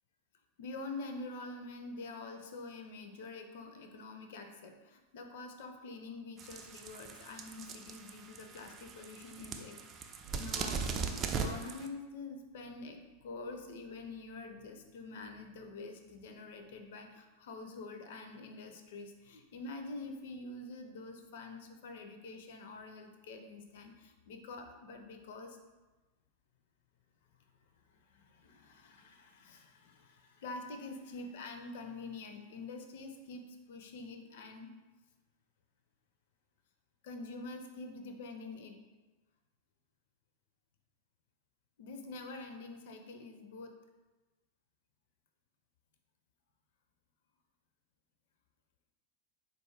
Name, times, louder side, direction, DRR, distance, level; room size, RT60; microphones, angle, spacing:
voice 1, 0.6-25.6 27.9-34.7 37.0-38.8 41.8-43.8, left 3 dB, 55° left, 6 dB, 0.4 m, -46 dB
sound 1, 6.4-11.9, right 5 dB, 30° right, 0.3 m, -39 dB
3.8 x 2.3 x 3.3 m, 1.2 s
figure-of-eight pair, 90°, 0 cm